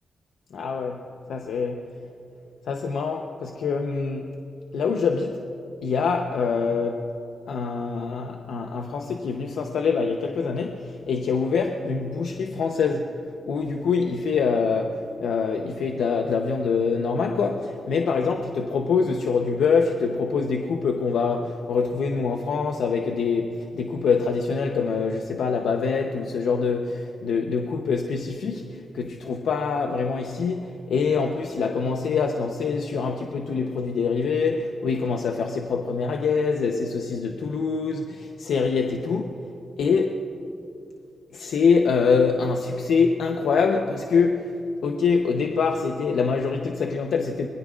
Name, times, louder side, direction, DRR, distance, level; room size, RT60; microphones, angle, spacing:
voice 1, 0.5-1.9 2.7-4.3 4.7-5.4 5.8-7.1 7.5-13.2 13.5-39.4 39.8-40.2 41.3-44.5 44.8-47.5, left 5 dB, 90° left, 3 dB, 0.8 m, -25 dB
26.0 x 21.0 x 2.5 m, 2.7 s
cardioid pair, 90°, 0 cm